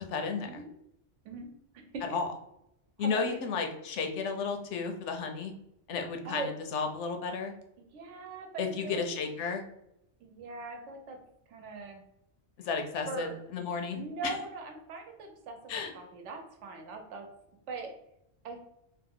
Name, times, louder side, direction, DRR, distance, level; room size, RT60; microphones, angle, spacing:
voice 1, 0.1-0.6 2.1-2.3 3.0-5.5 5.9-7.5 8.6-9.6 12.6-14.4 15.7-15.9, left 5 dB, 80° left, 4 dB, 0.9 m, -33 dB
voice 2, 1.7-2.2 3.0-3.5 6.2-6.5 7.8-9.0 10.2-11.2 11.5-12.0 13.1-13.4 13.9-17.3 17.7-17.9 18.4-18.6, right 3 dB, 90° right, 4 dB, 1.0 m, -41 dB
2.8 x 2.0 x 3.6 m, 0.81 s
omnidirectional pair, 1.2 m